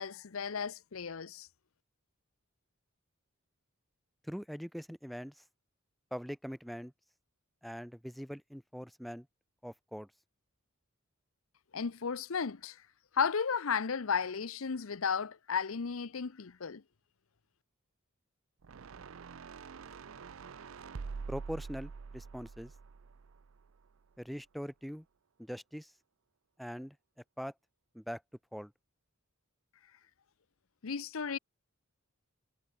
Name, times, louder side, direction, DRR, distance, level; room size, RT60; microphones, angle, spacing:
voice 1, 0.0-1.5 11.7-12.8 13.1-16.8 30.8-31.4, left 6 dB, 75° left, 0.7 m, -34 dB
voice 2, 4.2-5.4 6.1-6.9 7.6-9.3 9.6-10.1 21.3-22.7 24.2-25.1 25.4-25.9 26.6-27.0 27.4-27.5 27.9-28.2 28.5-28.7, equal, ahead, 0.6 m, -42 dB
sound 1, 18.6-23.9, right 5 dB, 70° right, 0.5 m, -46 dB
head